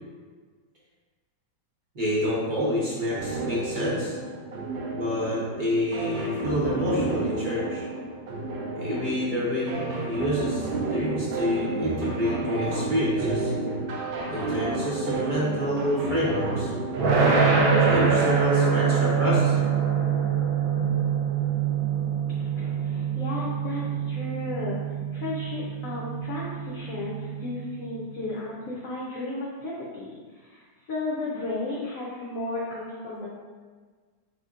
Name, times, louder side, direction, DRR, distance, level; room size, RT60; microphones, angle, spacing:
voice 1, 1.9-4.1 4.9-7.8 8.8-13.5 14.3-16.7 17.8-19.7, left 1 dB, 40° right, -8 dB, 0.7 m, -28 dB
sound 1, 3.1-18.1, right 3 dB, 85° right, 1.3 m, -31 dB
sound 2, 17.0-28.0, right 6 dB, 70° right, 0.8 m, -25 dB
voice 2, 22.4-33.3, left 2 dB, 65° left, -6 dB, 0.9 m, -34 dB
4.1 x 3.5 x 2.4 m, 1.5 s
omnidirectional pair, 2.0 m